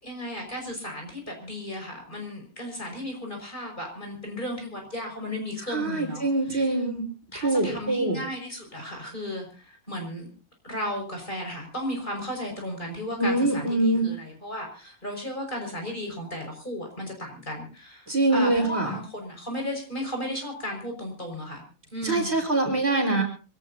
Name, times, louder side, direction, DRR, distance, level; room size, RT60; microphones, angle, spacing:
voice 1, 0.0-6.8 7.3-10.3 10.6-21.6 21.9-22.3, left 1 dB, 35° left, 2 dB, 5.8 m, -35 dB
voice 2, 5.7-7.0 7.4-8.2 13.2-14.1 18.1-18.9 22.0-23.2, right 2 dB, 45° right, 1 dB, 4.9 m, -24 dB
26.0 x 17.5 x 2.7 m, 0.35 s
omnidirectional pair, 1.5 m